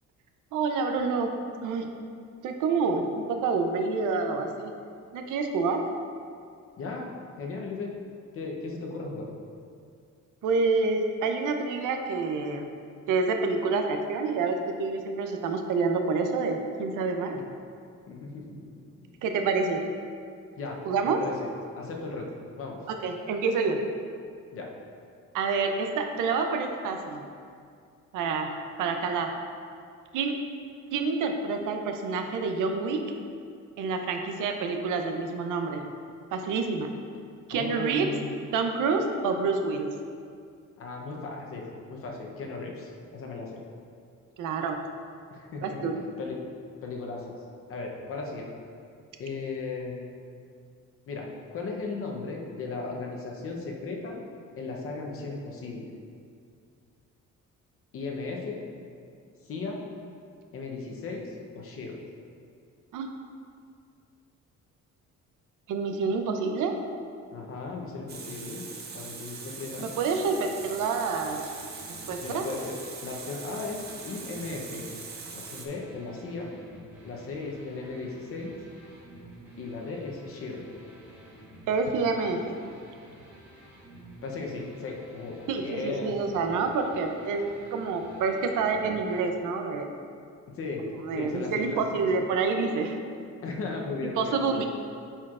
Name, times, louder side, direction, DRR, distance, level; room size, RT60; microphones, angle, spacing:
voice 1, 0.5-1.3 1.6-1.9 2.4-4.7 5.1-5.9 10.4-12.7 13.1-17.4 19.2-19.9 20.9-21.2 22.9-23.8 25.3-27.2 28.1-29.3 30.1-30.4 30.9-33.1 33.8-35.9 36.3-36.9 37.5-38.1 38.5-39.9 44.4-44.8 45.6-45.9 62.9-63.1 65.7-66.8 69.8-71.5 71.9-72.5 81.7-82.6 85.5-89.9 90.8-93.0 94.0-94.6, right 4 dB, 85° right, 5 dB, 0.6 m, -28 dB
voice 2, 6.8-7.1 7.4-7.9 8.3-9.3 17.3-17.4 18.1-18.7 20.6-21.5 21.8-22.3 22.6-22.8 24.5-24.7 37.5-38.4 40.8-43.6 45.3-46.4 46.8-47.3 47.7-48.5 49.2-50.1 51.1-54.2 54.6-55.9 57.9-58.6 59.4-59.8 60.5-62.0 67.3-68.6 68.9-69.9 72.2-72.7 73.0-74.9 75.3-76.5 77.0-78.5 79.6-80.6 84.2-86.1 90.5-90.8 91.1-91.8 93.4-94.6, left 3 dB, 45° left, 0 dB, 0.8 m, -36 dB
Water tap faucet, 68.1-75.7, right 5 dB, 35° right, 0.5 m, -42 dB
sound 1, 70.0-89.2, right 1 dB, 5° right, 1.1 m, -51 dB
8.7 x 4.4 x 2.4 m, 2.3 s
cardioid pair, 175°, 31 cm